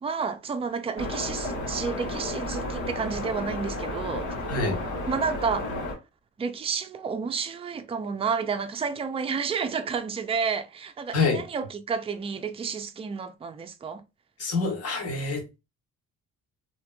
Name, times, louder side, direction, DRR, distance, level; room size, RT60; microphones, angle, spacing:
voice 1, 0.0-4.3 5.1-5.7 6.4-14.0, right 5 dB, 20° right, 0.4 m, -30 dB
sound 1, 1.0-5.9, left 1 dB, 80° left, 1.5 m, -32 dB
voice 2, 4.5-4.8 11.1-11.4 14.4-15.6, left 3 dB, 50° left, 1.5 m, -26 dB
2.8 x 2.8 x 2.2 m
cardioid pair, 90°, 30 cm